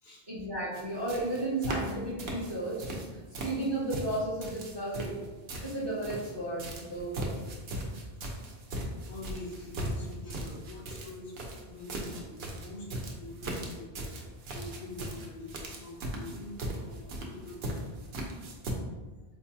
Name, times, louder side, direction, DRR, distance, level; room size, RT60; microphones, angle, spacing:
voice 1, 0.3-2.9 3.4-5.2 5.6-7.3, right 1 dB, 30° right, -7 dB, 0.6 m, -33 dB
sound 1, 0.7-0.8 1.1-1.9 2.2-3.1 3.3-6.3 6.6-18.7, right 1 dB, 75° right, 0.8 m, -38 dB
voice 2, 7.3-7.7 8.2-8.6 9.0-11.3 11.6-18.2 18.5-18.7, left 2 dB, 65° left, -2 dB, 0.9 m, -46 dB
4.4 x 2.3 x 2.7 m, 1.2 s
omnidirectional pair, 1.1 m